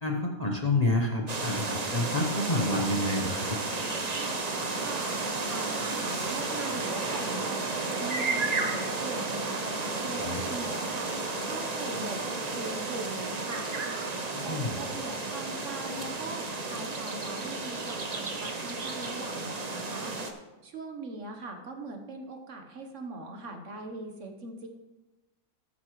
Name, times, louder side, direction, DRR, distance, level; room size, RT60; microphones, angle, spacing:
voice 1, 0.0-3.6 10.2-10.4 14.3-14.8, left 2 dB, 30° left, 1 dB, 0.9 m, -28 dB
sound 1, 1.3-20.3, right 3 dB, 35° right, 0.7 m, -32 dB
voice 2, 4.8-5.1 5.5-11.1 11.4-12.2 12.5-13.7 14.4-20.1 20.6-24.7, right 2 dB, 55° right, 4 dB, 1.3 m, -41 dB
14.0 x 8.4 x 3.1 m, 1.1 s
omnidirectional pair, 1.6 m